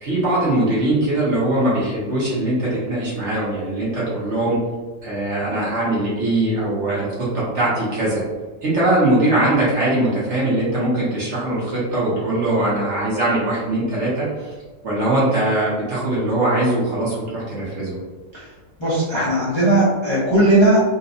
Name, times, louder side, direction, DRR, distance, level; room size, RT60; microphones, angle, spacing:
voice 1, 0.0-4.6 5.0-7.1 7.3-8.2 8.6-14.5 14.8-18.0, right 1 dB, 50° right, -7 dB, 1.1 m, -21 dB
voice 2, 18.8-20.8, right 1 dB, 25° left, -10 dB, 0.7 m, -17 dB
3.9 x 2.3 x 2.6 m, 1.3 s
omnidirectional pair, 1.7 m